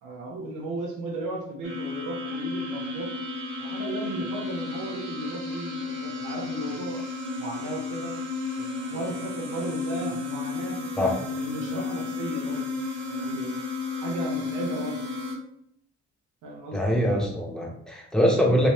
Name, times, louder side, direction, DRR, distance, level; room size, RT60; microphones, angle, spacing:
voice 1, 0.0-3.1 3.6-7.0 7.4-8.1 8.6-12.6 13.1-13.5 14.0-15.0 16.4-17.0, right 2 dB, 80° right, -2 dB, 1.0 m, -35 dB
sound 1, 1.6-15.3, left 3 dB, 40° right, 1.4 m, -32 dB
voice 2, 16.7-18.7, equal, ahead, -2 dB, 1.1 m, -23 dB
3.4 x 3.0 x 3.1 m, 0.72 s
cardioid pair, 90°, 30 cm